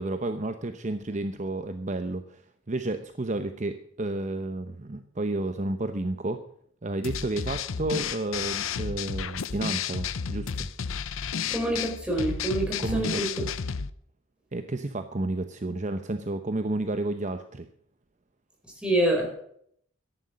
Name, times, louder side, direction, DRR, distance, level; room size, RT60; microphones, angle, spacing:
voice 1, 0.0-6.4 6.8-10.7 12.8-13.5 14.5-17.7, right 2 dB, 35° right, 9 dB, 0.8 m, -31 dB
sound 1, 7.0-13.9, left 6 dB, 80° left, 0.7 m, -32 dB
voice 2, 11.5-13.4 18.8-19.3, right 1 dB, 5° right, 0 dB, 4.5 m, -26 dB
13.5 x 11.0 x 6.2 m, 0.67 s
head